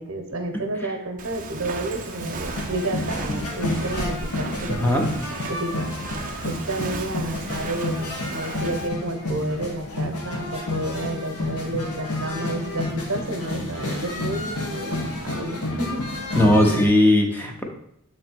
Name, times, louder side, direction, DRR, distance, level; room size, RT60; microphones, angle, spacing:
voice 1, 0.0-5.1 5.5-5.9 6.4-16.0 16.7-16.9, right 1 dB, 65° right, 5 dB, 0.9 m, -30 dB
Walk footsteps, 1.2-8.9, right 3 dB, 40° right, 0.6 m, -35 dB
sound 1, 1.7-16.9, left 2 dB, 85° left, 1.3 m, -30 dB
voice 2, 16.3-17.6, left 1 dB, 10° left, 1 dB, 0.8 m, -18 dB
6.9 x 3.2 x 4.4 m, 0.75 s
head